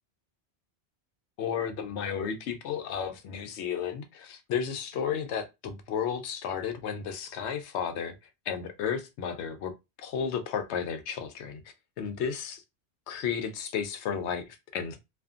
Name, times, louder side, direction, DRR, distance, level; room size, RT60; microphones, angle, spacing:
voice 1, 1.4-8.2 8.5-9.7 10.0-12.6 13.1-15.0, left 7 dB, 80° left, 0.9 m, -33 dB
2.5 x 2.4 x 2.4 m
omnidirectional pair, 1.1 m